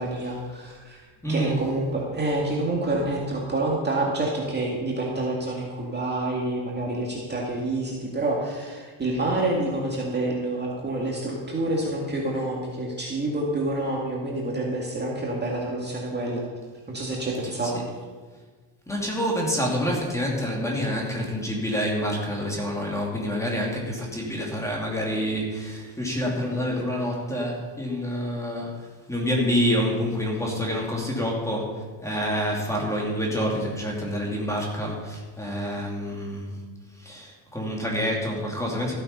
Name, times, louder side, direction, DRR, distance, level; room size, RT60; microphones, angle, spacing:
voice 1, 0.0-16.4 16.9-17.8, right 2 dB, 20° right, -3 dB, 2.2 m, -28 dB
voice 2, 1.2-1.6 17.6-17.7 18.9-36.6 37.0-38.9, equal, 5° left, -2 dB, 2.9 m, -27 dB
14.5 x 8.8 x 5.6 m, 1.4 s
cardioid pair, 135°, 48 cm